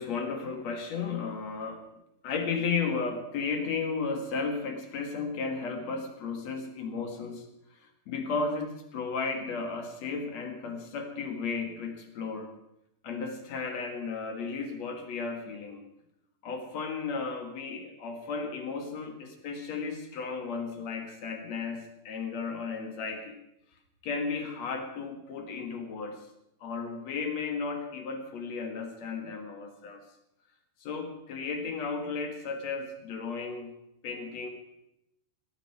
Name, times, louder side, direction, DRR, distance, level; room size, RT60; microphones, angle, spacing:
voice 1, 0.0-1.8 2.2-7.4 8.1-12.5 13.0-15.8 16.4-23.4 24.0-26.2 26.6-30.0 30.8-33.7 34.0-34.5, left 4 dB, 55° left, 5 dB, 2.1 m, -34 dB
18.0 x 12.5 x 4.7 m, 0.83 s
omnidirectional pair, 5.2 m